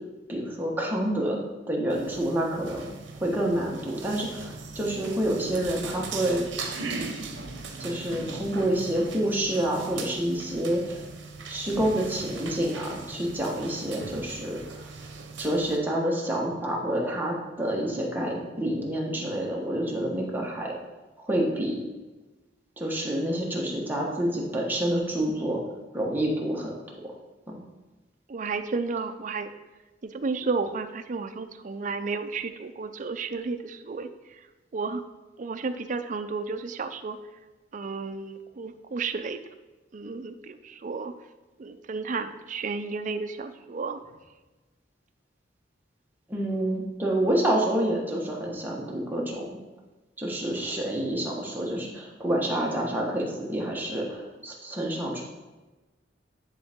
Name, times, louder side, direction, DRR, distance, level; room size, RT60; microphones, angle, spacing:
voice 1, 0.3-6.4 7.8-11.1 11.5-14.8 15.4-20.8 21.2-21.8 22.8-25.6 25.9-26.7 27.5-27.6 46.3-49.5 50.2-55.2, right 1 dB, 10° right, -3 dB, 1.2 m, -28 dB
sound 1, 1.9-15.8, right 4 dB, 75° right, 0.9 m, -39 dB
voice 2, 28.3-29.5 30.0-34.4 34.7-35.0 35.4-37.2 37.7-39.4 39.9-41.1 41.6-44.0, right 4 dB, 45° right, 9 dB, 0.4 m, -32 dB
10.0 x 3.9 x 3.6 m, 1.2 s
head